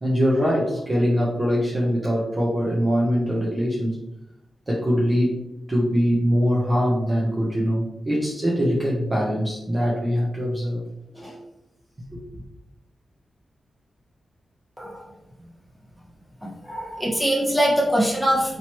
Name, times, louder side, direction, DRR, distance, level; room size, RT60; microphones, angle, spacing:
voice 1, 0.0-4.0 4.7-5.4 5.7-10.8 11.1-11.4 12.1-12.4, equal, 20° right, -5 dB, 0.7 m, -23 dB
voice 2, 16.4-18.6, equal, ahead, -4 dB, 1.0 m, -23 dB
4.5 x 2.9 x 2.9 m, 0.87 s
wide cardioid pair, 165°, 0 cm